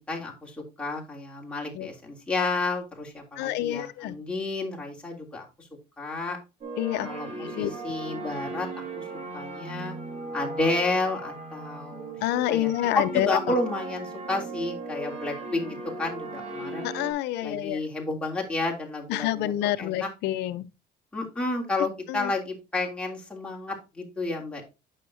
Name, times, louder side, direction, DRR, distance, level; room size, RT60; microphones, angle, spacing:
voice 1, 0.1-5.7 6.0-6.4 7.0-9.0 9.3-9.9 10.3-16.9 17.4-20.1 21.1-24.6, left 2 dB, 5° left, 3.1 m, -31 dB
voice 2, 3.4-4.1 6.8-7.1 7.6-7.7 12.2-13.4 16.8-17.8 19.1-20.6, left 14 dB, 85° left, 0.7 m, -27 dB
sound 1, 6.6-17.1, right 3 dB, 40° right, 3.3 m, -37 dB
9.1 x 6.5 x 2.8 m
cardioid pair, 110°, 17 cm